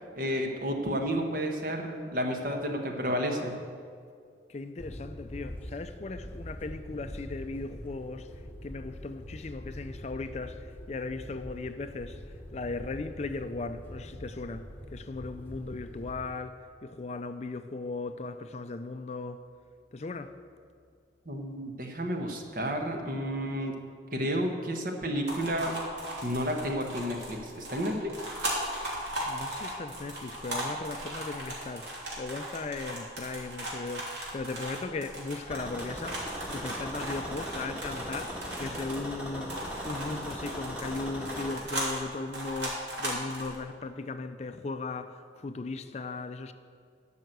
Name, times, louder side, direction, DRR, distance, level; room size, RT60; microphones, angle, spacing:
voice 1, 0.2-3.6 21.3-23.7 24.1-25.7 26.2-28.1, equal, 50° right, 1.3 m, -31 dB
voice 2, 4.5-19.4 19.9-20.3 29.3-31.9 32.2-46.5, left 3 dB, 35° left, 0.4 m, -37 dB
sound 1, 4.8-16.4, equal, 10° left, 1.0 m, -44 dB
sound 2, 25.3-39.1 39.5-43.6, right 1 dB, 70° right, 3.1 m, -37 dB
sound 3, 35.5-41.5, equal, 5° right, 1.9 m, -39 dB
12.5 x 5.7 x 7.9 m
head